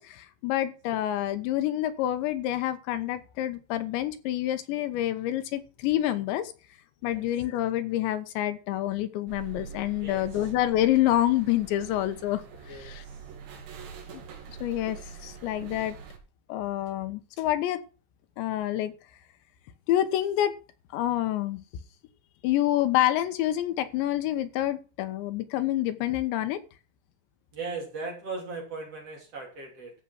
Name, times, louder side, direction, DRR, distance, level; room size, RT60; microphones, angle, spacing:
voice 1, 0.0-6.5 7.0-12.4 12.7-13.0 14.1-14.2 14.5-15.9 16.5-17.8 18.4-18.9 19.9-20.5 20.9-21.6 22.4-26.6, left 13 dB, 85° left, 10 dB, 3.3 m, -27 dB
sound 1, 9.3-16.2, right 6 dB, 80° right, 4.8 m, -44 dB
voice 2, 10.0-10.5 12.7-13.2 27.5-29.9, right 3 dB, 35° right, 0 dB, 3.9 m, -38 dB
14.5 x 6.2 x 6.0 m, 0.36 s
omnidirectional pair, 5.0 m